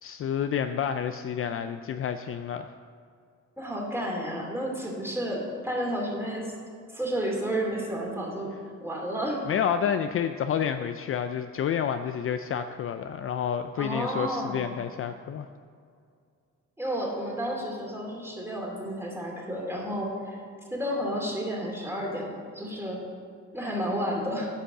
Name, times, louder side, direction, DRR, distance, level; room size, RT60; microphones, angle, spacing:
voice 1, 0.0-2.7 9.5-15.5, left 8 dB, 45° left, 9 dB, 0.4 m, -29 dB
voice 2, 3.6-6.5 6.9-8.5 8.8-9.4 13.8-14.6 16.8-20.4 20.7-23.0 23.5-24.5, equal, 10° right, -2 dB, 2.5 m, -31 dB
10.0 x 5.1 x 6.5 m, 2.2 s
cardioid pair, 90°, 30 cm